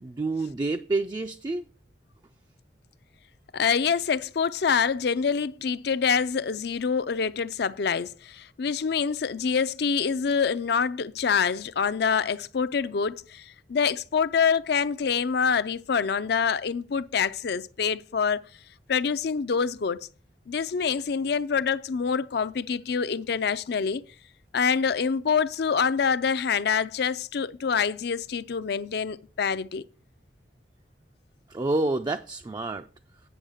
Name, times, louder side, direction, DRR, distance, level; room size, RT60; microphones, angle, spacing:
voice 1, 0.0-1.7 31.5-32.9, right 2 dB, 25° right, 0.3 m, -28 dB
voice 2, 3.5-18.4 18.9-20.0 20.5-24.0 24.5-29.8, left 6 dB, 60° left, 0.5 m, -26 dB
9.0 x 6.2 x 5.0 m
head